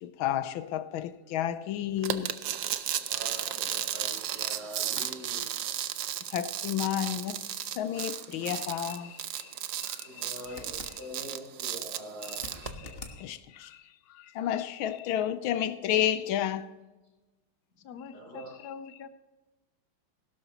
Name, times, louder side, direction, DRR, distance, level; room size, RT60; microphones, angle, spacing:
voice 1, 0.0-2.3 5.0-5.1 6.3-7.4 7.8-9.5 9.8-10.1 10.5-10.6 12.2-12.4 12.8-13.8 14.2-16.8, left 11 dB, 85° left, 1.5 m, -31 dB
sound 1, 2.0-12.7, right 11 dB, 65° right, 1.1 m, -34 dB
voice 2, 3.1-5.5 10.0-12.9 18.1-18.5, right 1 dB, 30° right, 4.7 m, -44 dB
sound 2, 10.4-11.0 12.3-13.2 16.2-16.3, left 3 dB, 30° left, 1.3 m, -44 dB
voice 3, 17.8-19.1, left 7 dB, 65° left, 1.2 m, -44 dB
16.5 x 12.5 x 2.9 m
omnidirectional pair, 2.2 m